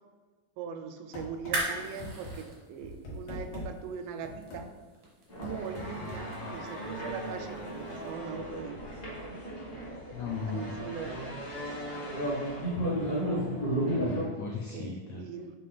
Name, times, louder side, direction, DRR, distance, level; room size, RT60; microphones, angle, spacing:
voice 1, 0.6-4.7 5.4-9.2 10.5-12.2 14.7-15.5, right 6 dB, 85° right, 7 dB, 2.1 m, -41 dB
sound 1, 1.1-1.6 2.0-2.3 2.8-3.7 4.2-4.6 5.4-6.2, left 1 dB, 50° left, 2.3 m, -41 dB
sound 2, 1.3-8.1, right 2 dB, 50° right, 1.1 m, -41 dB
sound 3, 5.3-14.3, equal, 35° left, 1.7 m, -34 dB
voice 2, 10.1-10.7 13.8-15.2, left 5 dB, 90° left, 1 dB, 1.4 m, -38 dB
6.7 x 3.6 x 4.2 m, 1.3 s
omnidirectional pair, 3.7 m